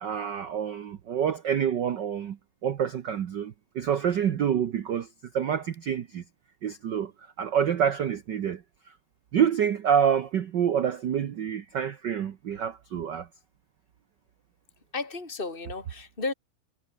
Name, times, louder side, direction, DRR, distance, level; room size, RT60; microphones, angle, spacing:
voice 1, 0.0-2.4 2.6-5.1 5.3-6.2 6.6-7.1 7.4-8.6 9.3-13.3, right 8 dB, 75° right, 1.0 m, -27 dB
voice 2, 14.9-16.3, left 3 dB, 15° left, 5.0 m, -33 dB
omnidirectional pair, 3.5 m